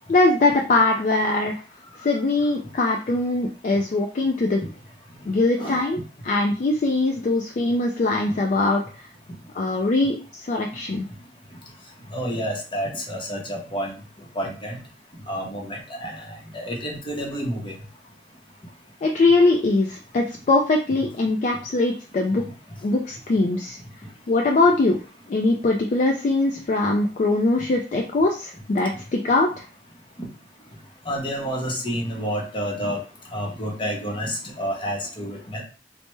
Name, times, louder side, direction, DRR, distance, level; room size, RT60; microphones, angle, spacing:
voice 1, 0.1-1.6 2.0-4.6 5.3-9.1 9.5-11.0 19.0-22.4 22.8-23.8 24.3-25.0 25.3-29.7, left 2 dB, 45° left, 1 dB, 0.3 m, -21 dB
voice 2, 12.1-13.9 14.3-14.8 15.3-16.3 16.5-17.7 31.1-33.0 33.3-35.6, equal, 30° left, 0 dB, 0.8 m, -29 dB
3.2 x 2.1 x 3.1 m, 0.37 s
head